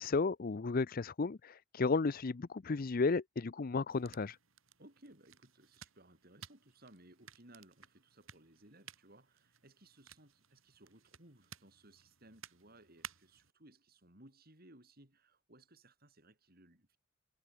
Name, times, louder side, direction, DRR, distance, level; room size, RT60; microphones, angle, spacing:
voice 1, 0.0-4.4, left 4 dB, 45° left, 0.5 m, -33 dB
sound 1, 3.9-13.5, right 8 dB, 70° right, 5.6 m, -57 dB
voice 2, 4.8-17.0, right 1 dB, 45° right, 6.0 m, -61 dB
head